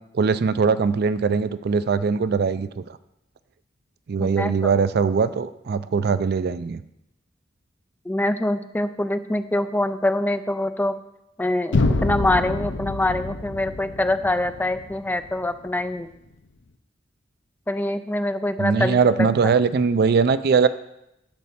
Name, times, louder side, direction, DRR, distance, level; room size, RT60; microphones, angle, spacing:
voice 1, 0.1-2.8 4.1-6.8 18.6-20.7, right 5 dB, 55° right, 14 dB, 0.4 m, -21 dB
voice 2, 4.2-4.7 8.1-10.9 11.4-16.1 17.7-19.0, left 1 dB, 10° left, 10 dB, 0.4 m, -24 dB
sound 1, 11.7-15.7, left 2 dB, 75° left, 0.6 m, -26 dB
10.5 x 4.2 x 7.1 m, 0.85 s
head